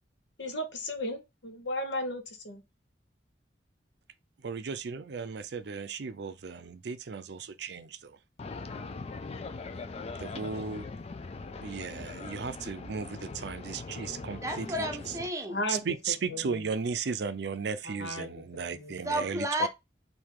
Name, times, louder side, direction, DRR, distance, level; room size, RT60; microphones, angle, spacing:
voice 1, 0.4-2.6 15.5-15.8 16.3-16.6 17.8-18.9, left 1 dB, 80° left, 1.1 m, -35 dB
voice 2, 4.4-8.2 10.1-10.8 11.6-14.9 15.7-19.7, right 5 dB, 65° right, 0.5 m, -35 dB
sound 1, 8.4-15.3, left 3 dB, 35° left, 0.4 m, -41 dB
voice 3, 14.3-15.6 19.0-19.7, equal, 15° right, 0.7 m, -32 dB
3.6 x 2.7 x 4.6 m
head